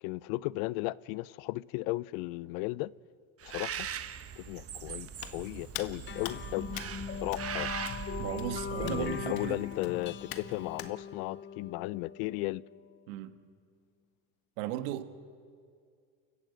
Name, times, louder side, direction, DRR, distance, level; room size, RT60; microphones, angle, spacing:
voice 1, 0.0-2.9 3.4-3.9 4.4-6.7 7.2-7.7 8.8-12.6, left 20 dB, 75° left, 0.6 m, -35 dB
Bird, 3.4-9.8, right 8 dB, 35° right, 1.2 m, -41 dB
Hands, 5.2-10.9, left 10 dB, 60° left, 1.7 m, -45 dB
sound 1, 6.1-12.9, left 7 dB, 25° left, 0.6 m, -41 dB
voice 2, 8.2-9.6 13.1-13.3 14.6-15.2, right 12 dB, 80° right, 1.6 m, -36 dB
29.5 x 14.0 x 8.0 m
supercardioid pair, 100°, 42 cm